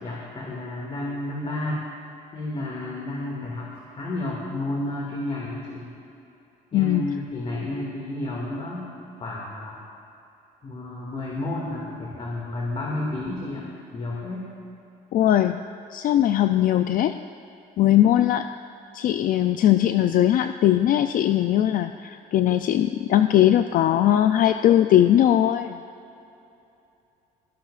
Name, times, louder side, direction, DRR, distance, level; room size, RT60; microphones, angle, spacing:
voice 1, 0.0-1.8 2.3-5.9 6.7-8.9 9.2-9.8 10.6-14.5, left 1 dB, 35° left, -3 dB, 2.2 m, -31 dB
voice 2, 6.7-7.1 15.1-15.6 15.9-17.2 17.8-18.5 18.9-25.8, left 12 dB, 55° left, 8 dB, 0.4 m, -20 dB
22.5 x 17.0 x 2.5 m, 2.8 s
cardioid pair, 110°, 17 cm